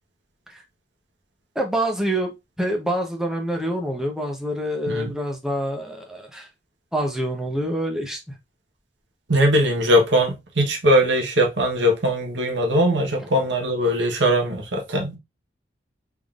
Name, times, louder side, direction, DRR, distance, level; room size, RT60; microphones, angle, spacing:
voice 1, 1.5-6.5 6.9-8.2, right 1 dB, 5° right, 0.7 m, -26 dB
voice 2, 9.3-15.2, equal, 80° right, 1.0 m, -20 dB
3.7 x 3.6 x 2.4 m
head